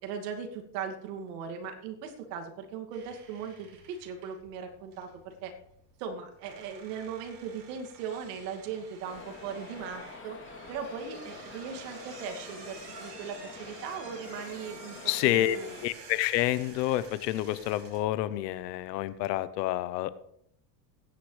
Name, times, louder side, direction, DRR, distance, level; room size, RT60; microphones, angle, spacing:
voice 1, 0.0-5.5 6.0-10.4 10.7-15.0 15.2-15.8, right 6 dB, 75° right, 4 dB, 2.5 m, -39 dB
sound 1, 2.9-19.4, right 5 dB, 55° right, 5.3 m, -51 dB
sound 2, 9.0-15.8, left 4 dB, 25° left, 3.1 m, -46 dB
voice 2, 15.0-15.6 15.8-20.1, left 14 dB, 80° left, 15 dB, 1.0 m, -28 dB
21.5 x 9.8 x 3.3 m, 0.73 s
supercardioid pair, 105°, 48 cm